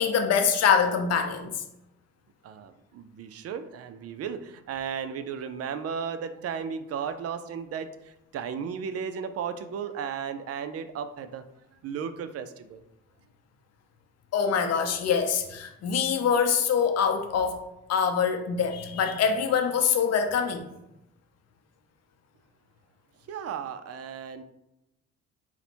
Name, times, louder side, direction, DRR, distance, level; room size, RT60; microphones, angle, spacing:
voice 1, 0.0-1.5 14.3-17.6 17.9-20.7, left 6 dB, 55° left, 5 dB, 0.7 m, -24 dB
voice 2, 2.4-11.4 11.8-12.8 23.3-24.4, right 7 dB, 55° right, 11 dB, 0.4 m, -35 dB
4.0 x 2.1 x 4.3 m, 0.87 s
cardioid pair, 90°, 30 cm